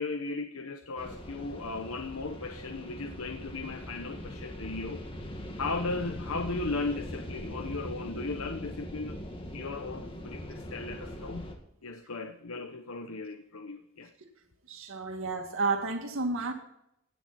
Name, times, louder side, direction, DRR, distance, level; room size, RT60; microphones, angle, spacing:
voice 1, 0.0-5.0 5.6-9.2 9.5-11.5 11.8-14.1, left 3 dB, 75° left, 6 dB, 0.9 m, -36 dB
sound 1, 1.0-11.6, equal, 25° left, 1.9 m, -41 dB
voice 2, 14.7-16.5, right 3 dB, 65° right, 4 dB, 2.1 m, -31 dB
16.0 x 9.5 x 4.3 m, 0.78 s
head